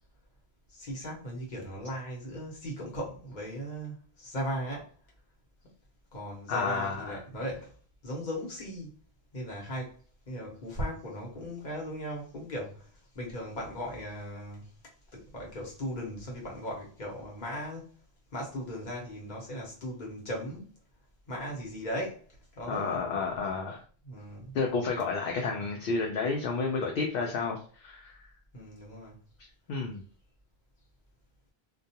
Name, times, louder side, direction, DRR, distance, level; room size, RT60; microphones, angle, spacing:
voice 1, 0.7-4.9 6.1-7.7 8.0-9.0 9.3-10.0 10.3-14.7 15.1-18.0 18.3-20.7 21.3-22.2 22.5-23.0 24.0-24.5 28.5-29.2, equal, 45° left, 1.0 m, -38 dB
voice 2, 6.5-7.2 22.7-23.8 24.5-28.2 29.7-30.0, left 4 dB, 65° left, 0.7 m, -31 dB
2.4 x 2.2 x 2.7 m
omnidirectional pair, 1.1 m